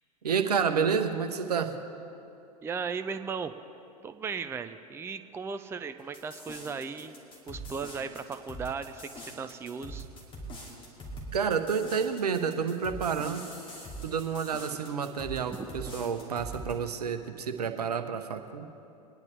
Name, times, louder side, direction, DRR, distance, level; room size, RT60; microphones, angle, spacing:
voice 1, 0.2-1.7 11.3-13.5 14.0-18.7, right 6 dB, 75° right, 7 dB, 1.0 m, -29 dB
voice 2, 2.6-3.5 4.0-7.1 7.5-10.1, right 5 dB, 10° right, 10 dB, 0.5 m, -36 dB
sound 1, 6.1-16.7, right 1 dB, 25° left, 2.8 m, -43 dB
23.0 x 10.5 x 3.5 m, 2.8 s
figure-of-eight pair, 90°, 20 cm